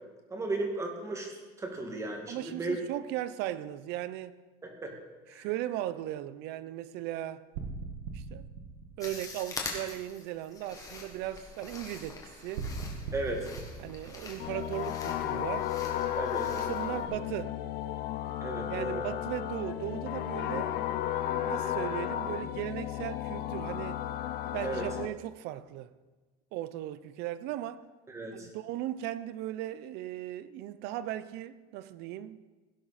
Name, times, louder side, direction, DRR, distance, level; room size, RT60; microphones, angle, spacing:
voice 1, 0.3-2.8 4.6-4.9 5.3-5.5 13.1-13.5 16.2-16.5 18.4-19.1 24.6-24.9 28.1-28.5, right 2 dB, 15° right, 2.0 m, -35 dB
voice 2, 2.3-4.4 5.3-7.4 8.1-8.5 9.0-12.7 13.8-15.8 16.5-17.6 18.7-20.8 21.4-24.0 24.5-25.9 26.5-27.8 28.3-32.5, right 13 dB, 60° right, 0.7 m, -37 dB
sound 1, 7.5-9.8 12.5-15.1, right 4 dB, 90° right, 1.9 m, -40 dB
sound 2, 9.0-17.1, left 3 dB, 15° left, 1.9 m, -44 dB
sound 3, 14.4-25.1, left 11 dB, 50° left, 0.8 m, -34 dB
17.0 x 11.0 x 4.3 m
cardioid pair, 170°, 20 cm